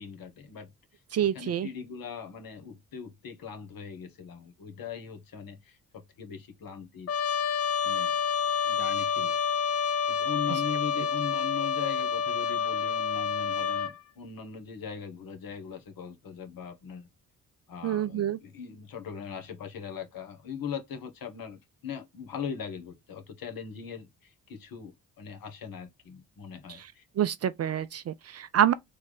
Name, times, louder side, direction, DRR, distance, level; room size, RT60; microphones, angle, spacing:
voice 1, 0.0-1.0 1.3-7.1 7.5-8.1 8.6-9.4 10.1-17.1 17.7-27.1, left 7 dB, 60° left, 1.3 m, -40 dB
voice 2, 1.1-1.7 10.5-10.6 11.0-11.1 17.8-18.4 27.2-28.7, right 10 dB, 40° right, 0.5 m, -27 dB
Trumpet, 7.1-13.9, left 6 dB, 35° left, 0.6 m, -28 dB
3.4 x 3.1 x 3.9 m
hypercardioid pair, 45°, 40 cm